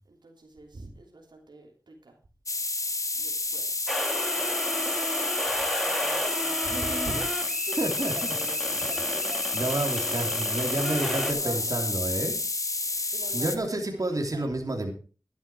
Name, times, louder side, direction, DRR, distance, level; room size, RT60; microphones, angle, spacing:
voice 1, 0.0-2.2 3.1-3.8 5.6-12.0 13.1-14.5, right 2 dB, 85° right, 1 dB, 3.1 m, -43 dB
sound 1, 2.5-13.6, left 3 dB, 45° left, 1.2 m, -30 dB
sound 2, 3.9-11.3, equal, ahead, 2.4 m, -33 dB
voice 2, 7.8-8.3 9.5-12.4 12.9-14.9, right 2 dB, 50° right, 2 dB, 3.0 m, -30 dB
12.0 x 10.5 x 4.8 m, 0.36 s
cardioid pair, 45°, 7 cm